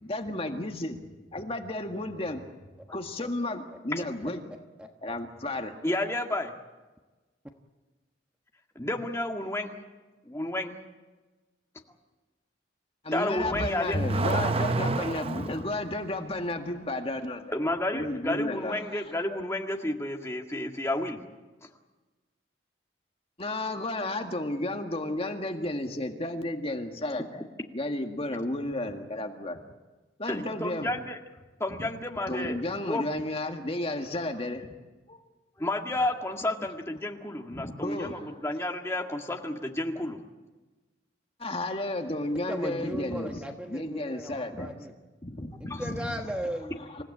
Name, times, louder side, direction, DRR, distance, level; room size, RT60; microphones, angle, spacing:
voice 1, 0.0-1.0 1.3-2.4 2.9-4.4 5.0-5.8 13.0-17.5 17.9-19.0 23.4-27.4 27.7-29.6 30.2-30.9 32.3-34.7 35.1-35.2 37.5-38.3 41.4-43.3 43.7-44.7 45.2-46.0 47.0-47.1, left 1 dB, 30° left, 4 dB, 1.9 m, -32 dB
voice 2, 4.8-5.1 42.5-44.9 45.6-47.0, equal, 5° right, 3 dB, 1.2 m, -37 dB
voice 3, 5.8-6.5 8.8-9.8 10.3-10.8 13.1-14.0 17.5-21.2 30.3-31.2 31.6-32.6 32.9-33.0 35.6-40.2 45.7-45.8, left 1 dB, 15° left, 2 dB, 1.9 m, -31 dB
Car / Accelerating revving vroom, 13.4-15.6, right 2 dB, 30° right, 0.7 m, -28 dB
28.0 x 16.0 x 8.6 m, 1.2 s
head